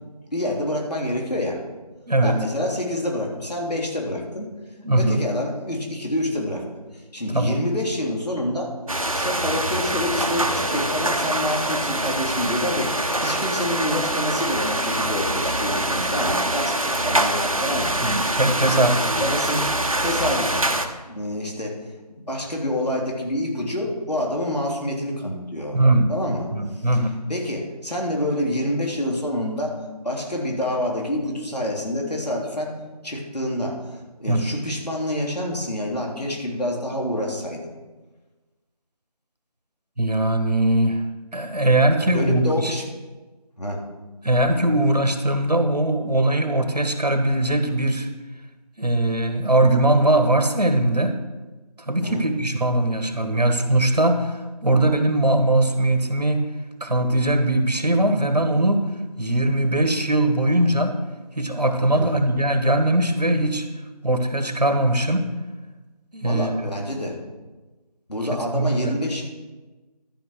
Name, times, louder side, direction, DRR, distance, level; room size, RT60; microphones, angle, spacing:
voice 1, 0.3-1.6 2.2-4.4 5.0-6.6 6.9-8.7 9.1-17.9 18.4-18.8 19.2-20.7 21.1-21.8 22.3-25.8 26.1-26.5 26.7-26.9 27.3-32.7 33.0-37.6 42.0-42.8 43.6-43.8 52.0-52.2 61.9-62.1 66.2-67.2 68.1-69.2, left 1 dB, 75° left, -1 dB, 3.1 m, -27 dB
voice 2, 4.8-5.2 7.3-7.6 18.0-19.2 25.7-26.1 26.5-27.2 34.3-34.4 40.0-41.0 41.3-42.7 44.2-48.1 48.8-51.2 51.9-56.5 56.8-58.8 59.2-61.0 61.3-63.6 64.0-65.3 66.1-66.6 68.5-69.0, right 1 dB, 75° right, 7 dB, 1.6 m, -20 dB
sound 1, 8.9-20.9, right 1 dB, 55° right, 1.0 m, -24 dB
13.0 x 5.2 x 6.4 m, 1.2 s
figure-of-eight pair, 175°, 21 cm